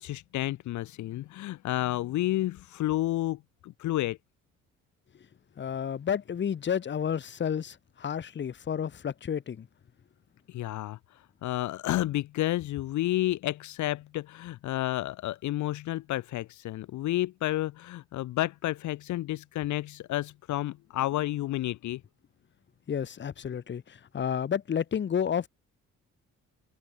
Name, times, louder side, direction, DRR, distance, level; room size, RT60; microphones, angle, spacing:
voice 1, 0.0-4.2 10.5-11.0 11.4-22.0, left 15 dB, 75° left, 0.7 m, -31 dB
voice 2, 5.6-9.7 22.9-25.5, left 8 dB, 40° left, 0.9 m, -31 dB
cardioid pair, 90°, 30 cm